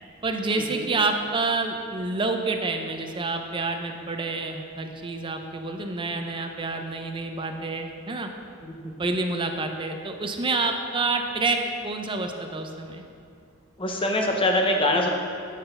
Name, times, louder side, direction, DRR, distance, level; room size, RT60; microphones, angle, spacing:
voice 1, 0.2-8.3 8.8-13.0, right 3 dB, 25° right, 4 dB, 0.5 m, -28 dB
voice 2, 13.8-15.1, left 1 dB, 25° left, 1 dB, 0.8 m, -23 dB
9.2 x 3.9 x 5.3 m, 2.4 s
head